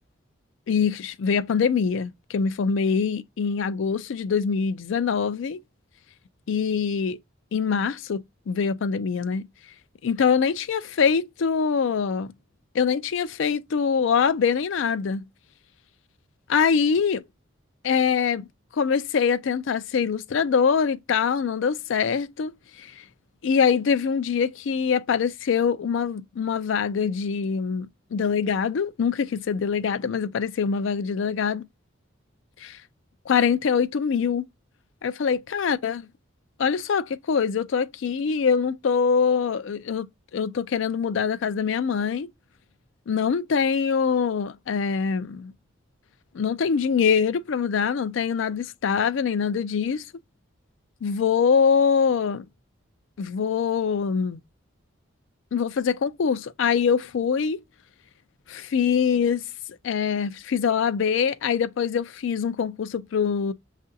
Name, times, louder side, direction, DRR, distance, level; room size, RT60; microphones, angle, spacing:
voice 1, 0.7-5.6 6.5-7.2 7.5-9.5 10.0-12.3 12.7-15.2 16.5-17.2 17.8-18.5 18.7-22.5 22.8-23.0 23.4-31.6 32.6-32.8 33.3-34.4 35.0-36.0 36.6-40.1 40.3-42.3 43.1-45.5 46.3-50.0 51.0-52.5 53.2-54.4 55.5-57.6 58.5-59.4 59.8-63.5, left 6 dB, 70° left, 0.4 m, -24 dB
6.5 x 2.5 x 2.6 m
head